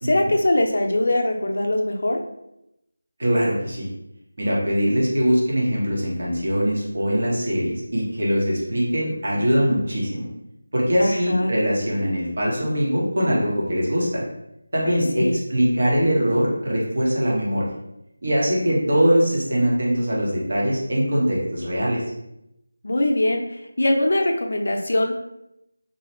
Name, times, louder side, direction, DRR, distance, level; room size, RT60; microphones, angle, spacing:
voice 1, 0.0-2.2 11.0-11.6 14.8-15.4 22.8-25.1, left 1 dB, 60° left, 2 dB, 0.5 m, -22 dB
voice 2, 3.2-3.9 4.4-10.3 10.7-14.2 14.7-17.7 18.2-22.0, equal, 55° right, -4 dB, 1.1 m, -22 dB
2.7 x 2.4 x 3.0 m, 0.84 s
figure-of-eight pair, 175°, 0 cm